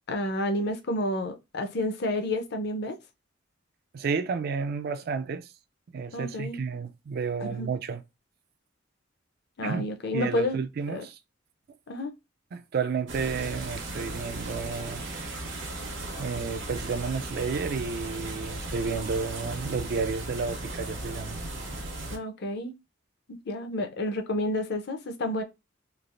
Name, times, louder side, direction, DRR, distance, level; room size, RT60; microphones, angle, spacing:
voice 1, 0.1-3.0 6.1-6.6 7.4-7.7 9.6-10.6 10.9-11.0 11.9-12.1 22.1-22.7 23.5-25.4, left 1 dB, 60° left, 0.6 m, -30 dB
voice 2, 3.9-5.5 5.9-8.0 9.6-9.8 10.1-11.2 12.5-15.0 16.2-21.4, right 5 dB, 50° right, 0.3 m, -31 dB
sound 1, 13.1-22.2, right 2 dB, 75° right, 0.9 m, -36 dB
3.3 x 2.4 x 2.4 m
head